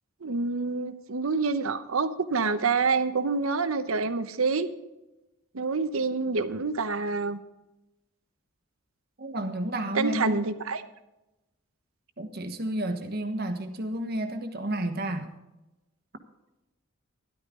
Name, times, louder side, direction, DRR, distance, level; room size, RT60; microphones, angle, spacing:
voice 1, 0.2-4.7 5.5-7.4 9.9-10.8, right 4 dB, 80° right, 11 dB, 0.9 m, -27 dB
voice 2, 9.2-10.4 12.2-15.3, right 1 dB, 50° right, 7 dB, 1.3 m, -31 dB
13.0 x 12.0 x 3.8 m, 1.0 s
head